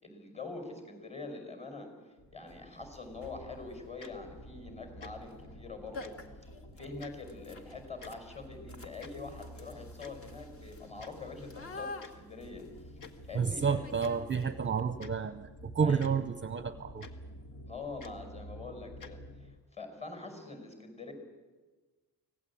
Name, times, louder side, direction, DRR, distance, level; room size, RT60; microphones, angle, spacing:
voice 1, 0.0-1.9 2.3-6.1 6.8-12.6 13.3-13.8 15.8-16.1 17.7-21.1, left 3 dB, 20° left, 6 dB, 5.3 m, -44 dB
sound 1, 2.2-19.6, equal, 80° left, 2.2 m, -51 dB
sound 2, 2.5-2.6 3.1-3.5 5.2-5.4 5.6-5.7 5.9-14.8, left 3 dB, 35° left, 1.9 m, -49 dB
Tick-tock, 4.0-4.1 5.0-5.1 6.0-6.1 7.0-7.1 8.0-8.1 9.0-9.1 10.0-10.2 11.0-11.1 12.0-12.1 13.0-13.1 14.0-14.1 15.0-15.1 16.0-16.1 17.0-17.1 18.0-18.2 19.0-19.1, left 5 dB, 60° left, 1.7 m, -48 dB
voice 2, 13.3-17.1, right 6 dB, 30° right, 11 dB, 0.7 m, -30 dB
25.0 x 17.5 x 8.6 m, 1.3 s
wide cardioid pair, 155°, 37 cm